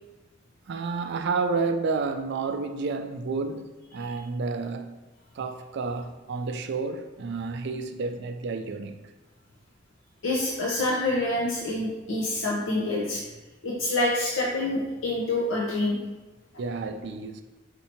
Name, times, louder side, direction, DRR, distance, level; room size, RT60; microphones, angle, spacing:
voice 1, 0.7-5.0 5.4-9.0 16.6-17.4, right 4 dB, 60° right, 0.4 m, -30 dB
voice 2, 10.2-13.2 13.6-16.0, left 2 dB, 70° left, 0.7 m, -26 dB
4.3 x 2.8 x 4.4 m
head